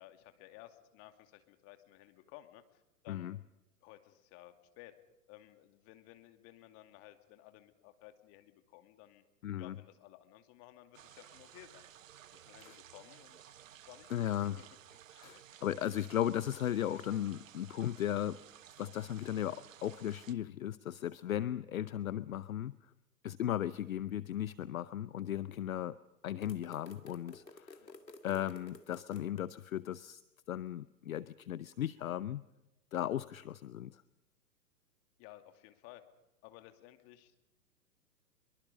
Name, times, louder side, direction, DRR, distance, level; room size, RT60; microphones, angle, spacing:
voice 1, 0.0-3.5 3.8-4.9 5.3-9.2 9.6-11.9 12.3-14.7 15.1-15.3 27.8-27.9 35.2-36.0 36.4-37.3, left 15 dB, 30° left, 8 dB, 2.3 m, -56 dB
voice 2, 9.4-9.7 12.6-12.8 14.1-14.6 15.2-18.4 18.8-22.7 23.2-26.0 26.2-27.8 28.2-30.2 30.5-32.4 32.9-34.0, left 11 dB, 55° left, 17 dB, 0.7 m, -36 dB
sound 1, 10.9-20.3, right 11 dB, 50° right, 1.1 m, -56 dB
sound 2, 26.4-29.4, left 3 dB, 80° left, 2.2 m, -53 dB
24.0 x 23.5 x 5.2 m, 0.95 s
figure-of-eight pair, 120°, 49 cm